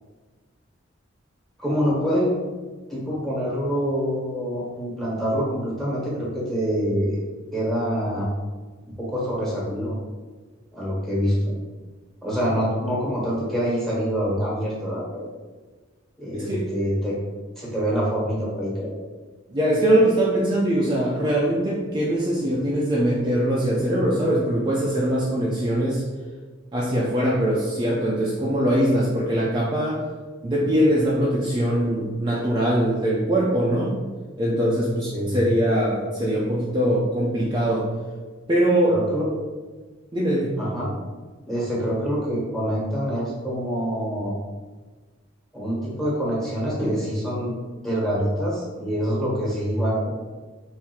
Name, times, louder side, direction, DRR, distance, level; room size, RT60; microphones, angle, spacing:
voice 1, 1.6-2.3 2.9-7.3 7.5-8.3 8.9-10.0 10.7-11.5 12.2-15.3 16.2-17.2 17.6-18.9 35.0-35.4 38.9-39.3 40.6-40.9 41.5-44.3 45.5-47.5 47.8-50.1, equal, ahead, -6 dB, 1.4 m, -25 dB
voice 2, 16.3-16.7 19.5-26.0 26.7-30.0 30.4-34.0 34.4-37.9 38.5-39.0 40.1-40.5, right 1 dB, 25° right, -6 dB, 0.6 m, -22 dB
3.5 x 2.7 x 4.6 m, 1.4 s
head